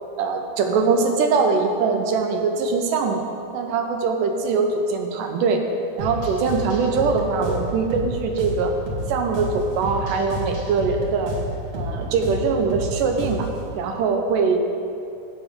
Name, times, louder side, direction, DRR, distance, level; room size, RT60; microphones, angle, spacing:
voice 1, 0.2-3.2 3.5-5.6 6.0-8.7 9.1-11.3 11.7-13.5 13.7-14.6, right 4 dB, 90° right, 4 dB, 2.4 m, -22 dB
sound 1, 6.0-13.7, equal, 55° right, 1.9 m, -30 dB
12.0 x 8.2 x 3.7 m, 2.6 s
omnidirectional pair, 3.8 m